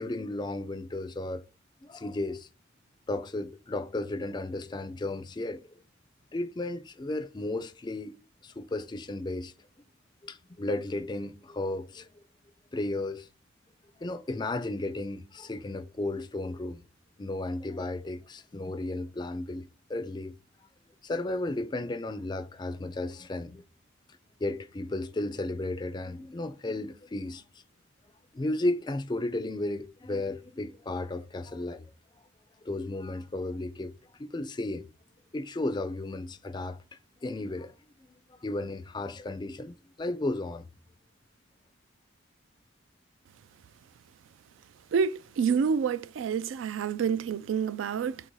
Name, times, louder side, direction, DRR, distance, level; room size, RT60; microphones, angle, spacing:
voice 1, 0.0-1.4 1.8-2.5 3.1-5.6 6.3-8.1 8.4-9.5 10.2-12.1 12.7-13.3 14.0-16.8 17.2-20.4 21.0-23.6 24.4-27.4 28.3-31.8 32.6-33.9 34.2-34.8 35.3-36.8 37.2-37.7 38.4-40.6, left 2 dB, 20° left, 0.3 m, -34 dB
voice 2, 44.9-48.2, right 6 dB, 75° right, 0.3 m, -28 dB
3.9 x 2.6 x 4.5 m
head